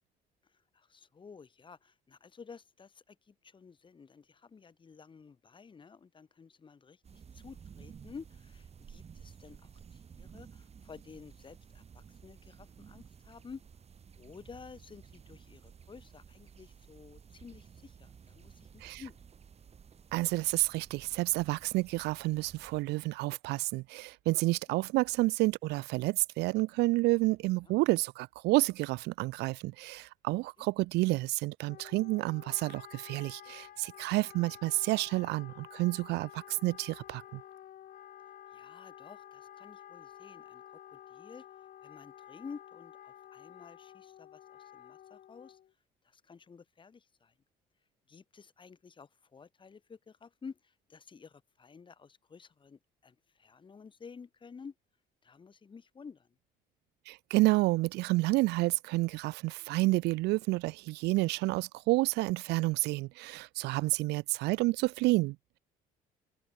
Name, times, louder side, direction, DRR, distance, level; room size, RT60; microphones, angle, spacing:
voice 1, 0.7-13.6 14.2-19.3 27.6-27.8 30.6-30.7 34.2-34.3 38.5-40.6 40.9-45.6 46.0-47.3 48.1-54.7 55.2-56.3 63.7-63.9, left 5 dB, 30° left, 2.0 m, -52 dB
sound 1, 7.0-22.8, right 7 dB, 40° right, 6.0 m, -54 dB
voice 2, 20.1-37.4 57.1-65.4, right 21 dB, 80° right, 0.4 m, -30 dB
Wind instrument woodwind instrument, 31.7-45.7, left 11 dB, 55° left, 4.4 m, -51 dB
cardioid pair, 110°, 17 cm